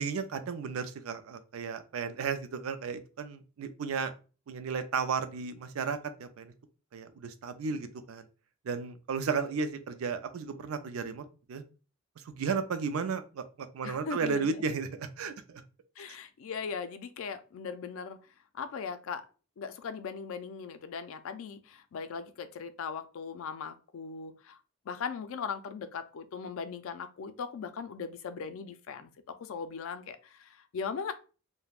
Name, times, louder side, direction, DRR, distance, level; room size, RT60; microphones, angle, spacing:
voice 1, 0.0-4.1 4.5-6.5 6.9-8.3 8.7-11.2 11.5-11.6 12.3-13.4 13.7-15.6, right 5 dB, 85° right, 10 dB, 0.4 m, -34 dB
voice 2, 13.8-14.6 16.0-18.2 18.5-19.2 19.6-24.6 24.9-31.1, left 6 dB, 70° left, 10 dB, 0.4 m, -39 dB
2.4 x 2.1 x 3.3 m, 0.35 s
head